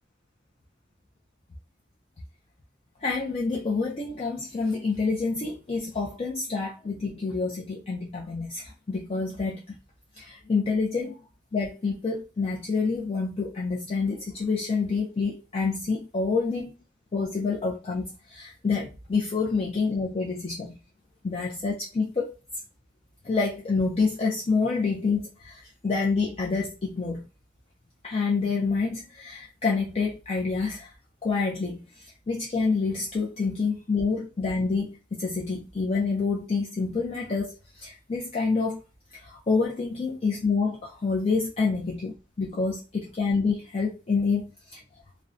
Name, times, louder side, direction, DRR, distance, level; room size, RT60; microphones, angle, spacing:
voice 1, 3.0-9.8 10.2-11.2 11.5-16.7 17.1-20.7 21.2-22.3 23.2-27.3 28.0-30.9 31.2-38.8 39.1-44.8, left 4 dB, 35° left, -2 dB, 0.4 m, -27 dB
2.5 x 2.0 x 2.4 m, 0.31 s
head